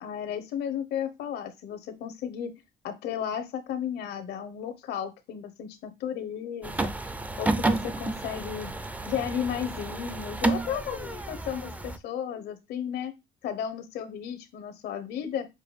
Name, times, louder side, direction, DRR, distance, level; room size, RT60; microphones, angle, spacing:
voice 1, 0.0-6.9 7.4-8.7 9.1-13.1 13.4-15.5, left 9 dB, 75° left, 10 dB, 0.8 m, -34 dB
sound 1, 6.6-12.0, right 2 dB, 10° right, 0.4 m, -31 dB
6.7 x 2.2 x 3.1 m, 0.23 s
cardioid pair, 110°, 17 cm